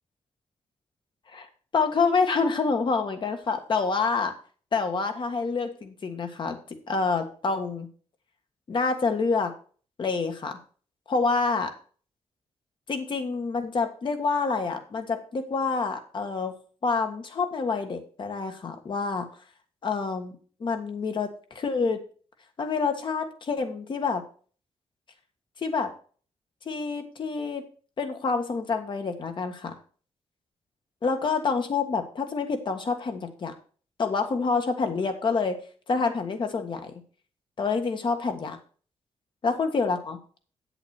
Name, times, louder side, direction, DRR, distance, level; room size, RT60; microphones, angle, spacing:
voice 1, 1.3-4.3 4.7-6.6 6.9-7.9 8.7-9.5 10.0-10.6 11.1-11.7 12.9-16.5 16.8-19.3 19.8-22.0 22.6-24.2 25.6-25.9 26.6-27.6 28.0-29.7 31.0-33.5 34.0-35.6 35.9-36.9 37.6-38.6 39.4-40.2, left 4 dB, 45° left, 6 dB, 1.7 m, -27 dB
8.6 x 8.0 x 4.5 m, 0.41 s
wide cardioid pair, 125°, 11 cm